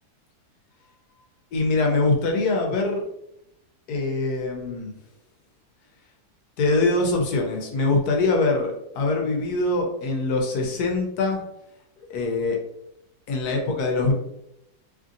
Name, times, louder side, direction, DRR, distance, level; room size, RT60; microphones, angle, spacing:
voice 1, 1.5-3.0 3.9-4.9 6.6-11.4 12.0-12.6 13.3-14.1, left 3 dB, 80° left, 1 dB, 1.2 m, -23 dB
3.1 x 2.6 x 2.5 m, 0.80 s
omnidirectional pair, 1.6 m